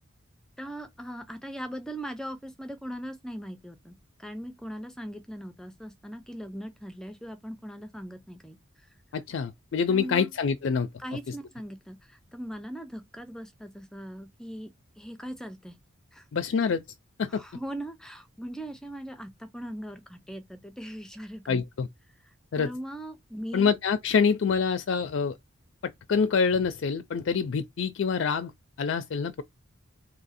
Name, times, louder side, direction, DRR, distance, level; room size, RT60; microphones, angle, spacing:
voice 1, 0.6-8.9 9.9-10.3 11.0-14.7 15.0-15.8 16.1-16.3 17.3-21.6 22.2-23.7, equal, 5° left, 0.5 m, -40 dB
voice 2, 9.1-10.9 16.3-16.8 17.2-17.4 21.5-21.9 22.5-22.7 23.5-25.4 25.8-28.5 28.8-29.4, left 5 dB, 60° left, 0.4 m, -26 dB
2.8 x 2.6 x 4.1 m
head